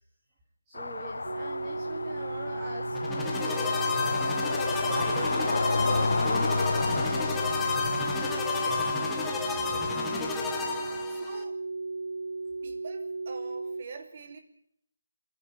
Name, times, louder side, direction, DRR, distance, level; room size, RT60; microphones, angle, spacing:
voice 1, 0.7-3.8 4.8-6.9, right 3 dB, 15° right, -3 dB, 2.4 m, -42 dB
sound 1, 0.8-11.1, left 3 dB, 75° left, 0.9 m, -32 dB
sound 2, 1.2-13.8, right 3 dB, 60° right, 0.7 m, -35 dB
sound 3, 2.9-11.4, left 5 dB, 5° left, 1.2 m, -32 dB
voice 2, 8.6-9.1 11.0-11.6 12.6-14.4, right 5 dB, 35° right, 5 dB, 2.7 m, -44 dB
27.5 x 10.0 x 9.7 m, 0.71 s
figure-of-eight pair, 170°, 0 cm